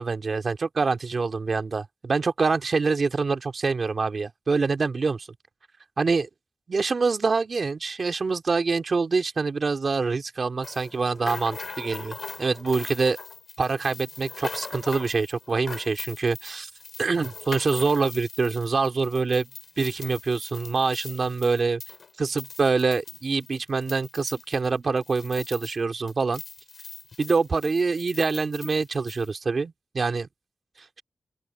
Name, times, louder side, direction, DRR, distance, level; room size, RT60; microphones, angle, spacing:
voice 1, 0.0-5.3 6.0-6.3 6.7-13.2 13.6-16.7 17.0-19.5 19.8-21.8 22.2-26.4 27.2-30.3, right 4 dB, 65° right, 2.5 m, -25 dB
sound 1, 10.6-25.8 26.1-29.3, left 4 dB, 70° left, 6.7 m, -41 dB
open air
wide cardioid pair, 85°, 0 cm